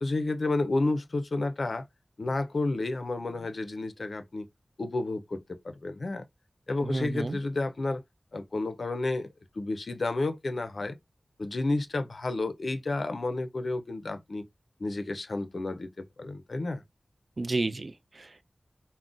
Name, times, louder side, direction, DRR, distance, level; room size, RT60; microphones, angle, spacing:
voice 1, 0.0-1.8 2.2-4.5 4.8-6.2 6.7-8.0 8.3-9.3 9.6-11.0 11.4-14.4 14.8-16.8, left 2 dB, 70° left, 0.5 m, -31 dB
voice 2, 6.8-7.4 17.4-18.4, right 2 dB, 60° right, 0.3 m, -32 dB
3.7 x 2.1 x 2.4 m
wide cardioid pair, 50°, 0 cm